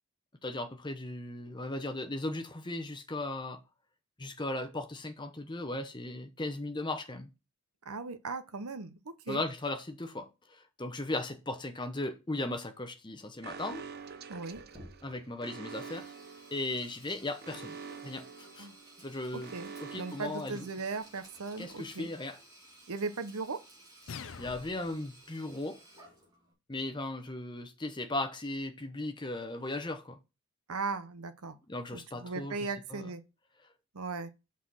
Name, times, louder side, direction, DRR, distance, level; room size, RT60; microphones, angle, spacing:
voice 1, 0.4-3.6 4.2-7.3 9.3-13.9 15.0-16.1 16.5-17.8 18.0-18.7 19.0-19.5 19.8-20.7 21.6-22.4 24.4-25.8 26.7-30.2 31.7-33.0, left 2 dB, 20° left, 0.8 m, -37 dB
voice 2, 7.8-9.4 14.3-14.6 18.6-18.7 19.3-22.1 22.9-23.6 30.7-31.5 31.9-33.2 33.9-34.3, right 4 dB, 85° right, 0.9 m, -38 dB
Alarm, 13.4-21.2, right 5 dB, 45° right, 0.6 m, -47 dB
Sink (filling or washing), 14.5-26.5, right 1 dB, 15° right, 2.2 m, -56 dB
sound 1, 24.1-25.1, left 6 dB, 60° left, 0.5 m, -44 dB
5.8 x 4.2 x 6.3 m
head